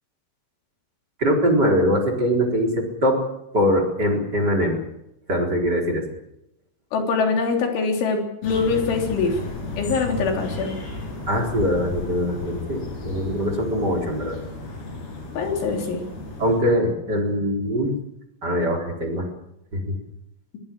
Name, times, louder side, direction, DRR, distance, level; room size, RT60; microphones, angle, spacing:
voice 1, 1.2-3.2 3.5-4.8 5.3-6.0 11.3-14.4 16.4-18.0 18.4-19.3 19.7-19.9, equal, 20° right, 1 dB, 4.2 m, -22 dB
voice 2, 6.9-9.4 9.8-10.8 15.3-16.0, left 4 dB, 75° left, 2 dB, 5.9 m, -23 dB
sound 1, 8.4-16.6, left 3 dB, 55° left, 7.2 m, -33 dB
23.0 x 19.5 x 7.7 m, 0.83 s
omnidirectional pair, 5.5 m